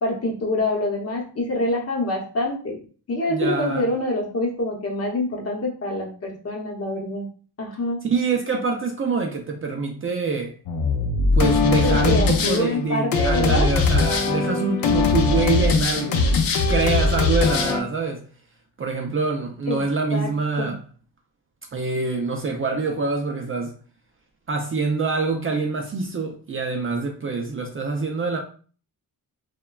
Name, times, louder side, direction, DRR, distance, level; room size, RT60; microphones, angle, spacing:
voice 1, 0.0-2.8 3.1-7.3 7.6-8.0 11.8-13.7 19.7-19.8 20.1-20.3 20.6-20.7, left 2 dB, 40° left, 0.8 m, -25 dB
voice 2, 3.3-3.9 8.1-10.5 11.3-18.2 18.8-20.8 21.7-23.7 24.5-28.4, right 4 dB, 35° right, 0.4 m, -25 dB
sound 1, 10.7-17.8, left 4 dB, 70° left, 0.5 m, -21 dB
3.2 x 2.2 x 2.2 m
wide cardioid pair, 140°, 36 cm